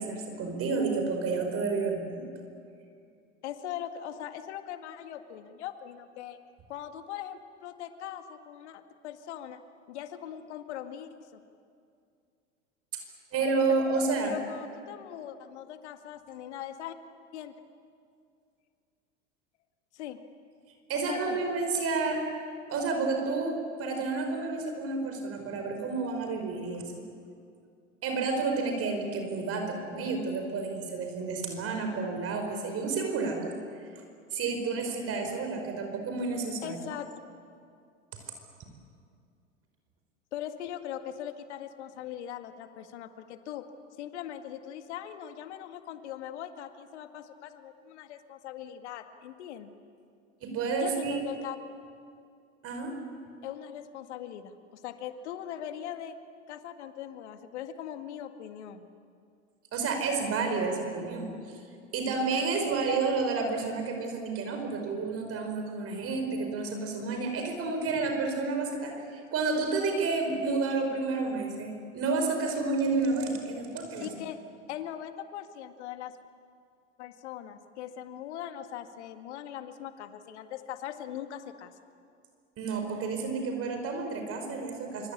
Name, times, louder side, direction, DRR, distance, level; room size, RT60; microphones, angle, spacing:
voice 1, 0.0-2.3 13.3-14.3 20.9-22.2 22.7-26.9 28.0-33.5 34.3-36.8 50.4-51.2 52.6-53.0 59.7-61.6 61.9-74.1 82.6-85.1, right 4 dB, 40° right, 4 dB, 5.3 m, -30 dB
voice 2, 3.4-6.4 6.7-9.6 9.9-11.4 13.7-13.8 14.2-16.9 17.3-17.5 19.9-20.2 20.9-21.4 36.6-37.1 40.3-43.7 44.0-49.7 50.8-51.6 53.4-56.2 56.5-58.9 74.0-74.4 74.7-76.2 77.0-81.7, left 10 dB, 60° left, 8 dB, 2.1 m, -40 dB
25.5 x 25.0 x 8.7 m, 2.3 s
figure-of-eight pair, 85°, 37 cm